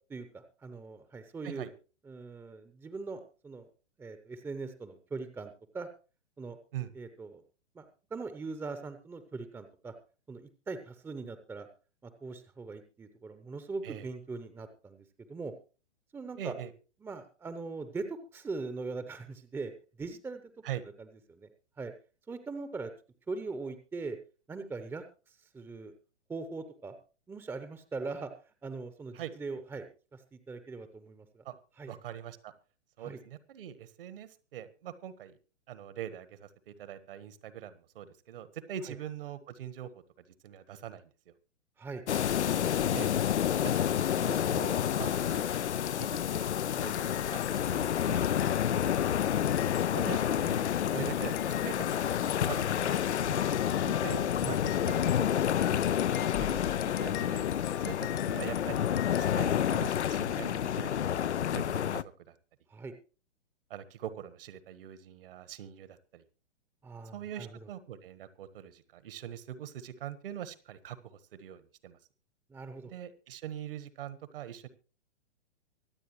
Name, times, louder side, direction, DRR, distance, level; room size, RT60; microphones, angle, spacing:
voice 1, 0.1-1.7 2.0-3.7 4.0-5.9 6.4-6.6 6.9-7.4 7.7-9.9 10.3-11.7 12.0-15.5 16.1-16.5 17.0-19.7 20.0-20.5 21.0-21.5 21.8-21.9 22.3-22.9 23.3-24.2 24.5-25.9 26.3-26.9 27.3-28.3 28.6-29.9 30.1-31.4 31.8-31.9 33.0-33.2 38.9-39.0 41.8-42.0 44.5-44.6 48.2-48.9 53.2-53.4 62.7-62.9 66.8-67.7 72.5-72.9, right 3 dB, 5° right, 10 dB, 0.8 m, -41 dB
voice 2, 16.4-16.7 20.6-20.8 29.1-29.3 31.4-31.6 31.9-32.5 33.0-35.4 35.7-40.0 40.4-41.1 42.9-43.1 44.1-45.5 46.0-49.2 49.9-50.7 50.9-51.3 51.6-53.0 53.8-55.2 56.2-61.1 61.5-62.3 63.7-66.2 67.1-72.0 72.8-74.7, right 10 dB, 50° right, 14 dB, 1.4 m, -43 dB
sound 1, 42.1-62.0, left 10 dB, 75° left, 0.6 m, -29 dB
sound 2, 45.8-60.3, left 14 dB, 25° left, 0.7 m, -45 dB
24.5 x 8.4 x 3.1 m, 0.35 s
figure-of-eight pair, 115°, 35 cm